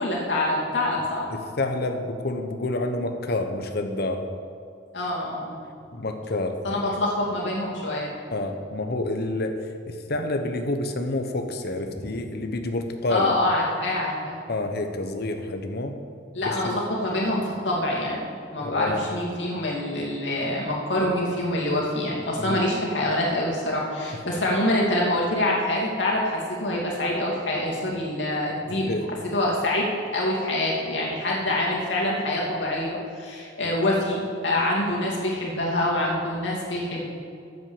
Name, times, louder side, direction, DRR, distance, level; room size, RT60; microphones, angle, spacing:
voice 1, 0.0-1.3 4.9-5.6 6.6-8.1 13.1-14.4 16.3-16.7 17.0-28.9 29.3-37.0, left 1 dB, 75° left, -4 dB, 2.6 m, -25 dB
voice 2, 1.3-4.3 5.9-7.0 8.3-13.3 14.5-16.0 16.4-16.8 18.6-19.1 22.4-22.6 24.1-24.2 28.7-29.1, left 2 dB, 55° left, 5 dB, 0.9 m, -29 dB
8.8 x 7.9 x 7.2 m, 2.4 s
head